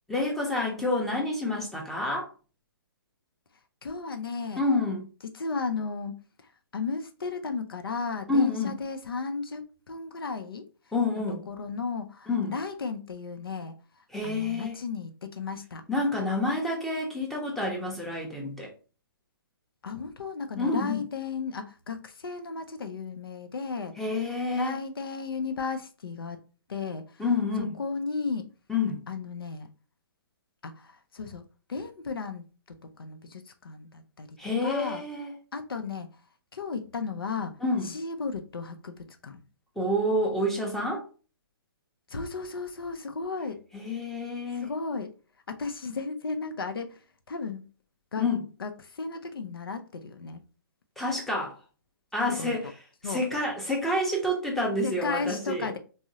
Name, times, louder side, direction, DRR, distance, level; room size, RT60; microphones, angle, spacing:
voice 1, 0.1-2.3 4.6-5.0 8.3-8.7 10.9-11.4 12.3-12.5 14.1-14.8 15.9-18.7 20.6-21.0 24.0-24.8 27.2-27.7 28.7-29.0 34.4-35.3 37.6-37.9 39.8-41.0 43.7-44.7 48.2-48.4 51.0-51.6 52.1-52.7 53.0-55.7, left 2 dB, ahead, 0.6 m, -28 dB
voice 2, 3.8-4.6 5.3-10.7 11.5-15.9 19.8-23.9 24.5-26.4 26.7-27.2 27.8-28.5 29.1-29.7 30.6-31.4 31.7-35.0 35.5-36.1 36.5-37.5 37.8-39.4 42.1-43.6 44.5-45.1 45.5-47.6 48.1-48.3 48.6-50.4 52.2-52.6 53.0-53.2 54.8-55.8, left 4 dB, 85° left, 0.5 m, -35 dB
3.5 x 2.0 x 2.7 m
hypercardioid pair, 140°, 12 cm